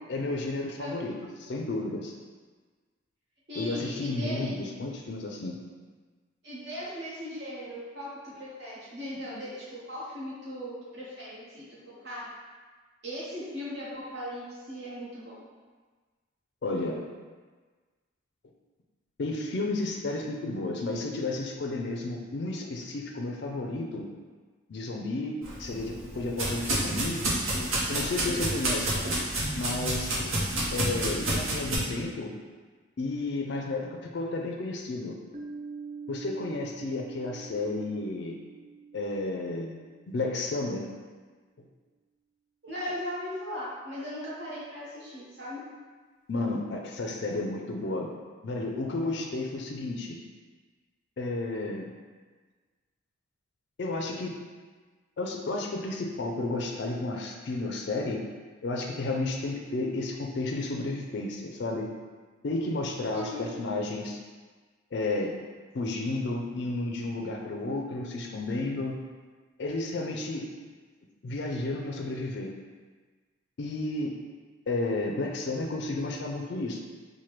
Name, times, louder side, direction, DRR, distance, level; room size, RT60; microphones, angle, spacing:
voice 1, 0.1-2.1 3.6-5.6 16.6-17.0 19.2-24.1 24.7-27.2 27.9-29.0 29.5-30.2 30.7-32.3 33.0-35.2 36.1-38.3 38.9-39.7 40.1-40.9 46.3-48.1 48.4-50.2 51.2-51.9 53.8-54.4 55.2-58.2 58.6-61.9 62.4-64.2 64.9-65.3 65.7-69.0 69.6-70.4 71.2-72.5 73.6-74.1 74.7-76.8, left 2 dB, 55° left, 0 dB, 0.4 m, -32 dB
voice 2, 3.5-4.6 6.4-12.3 13.0-15.5 42.6-45.7 63.1-63.4, equal, 55° right, -8 dB, 1.1 m, -38 dB
sound 1, 25.4-31.8, right 1 dB, 80° right, 0.8 m, -29 dB
Piano, 35.3-40.7, right 5 dB, 35° right, 0.4 m, -45 dB
4.3 x 2.2 x 3.1 m, 1.4 s
head